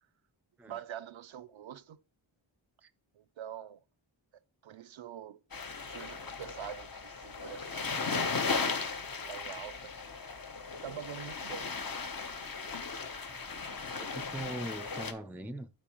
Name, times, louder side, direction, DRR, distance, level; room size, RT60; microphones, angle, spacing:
voice 1, 0.7-2.0 3.1-3.8 4.6-5.4 5.8-8.6 9.3-9.9 10.8-11.7, right 9 dB, 70° right, 0.5 m, -45 dB
sound 1, 5.5-15.1, left 4 dB, 45° left, 0.9 m, -37 dB
voice 2, 14.0-15.7, right 1 dB, 5° right, 0.4 m, -41 dB
8.6 x 5.6 x 3.0 m
wide cardioid pair, 50°, 49 cm